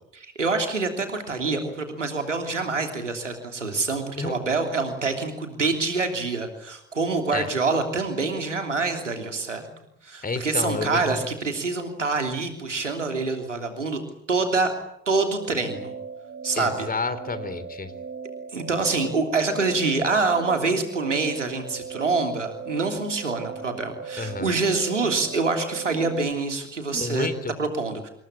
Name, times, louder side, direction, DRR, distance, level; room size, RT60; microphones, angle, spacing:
voice 1, 0.2-9.6 10.0-14.0 14.3-14.7 15.1-15.9 16.4-16.9 18.5-27.3 27.6-28.1, right 3 dB, 90° right, 5 dB, 3.2 m, -26 dB
voice 2, 10.2-11.0 16.6-17.9 24.2-24.5 26.9-27.5, left 4 dB, 25° left, 13 dB, 3.7 m, -30 dB
sound 1, 15.4-26.3, right 5 dB, 40° right, 3.2 m, -38 dB
27.5 x 21.5 x 8.7 m, 0.74 s
figure-of-eight pair, 55°, 35 cm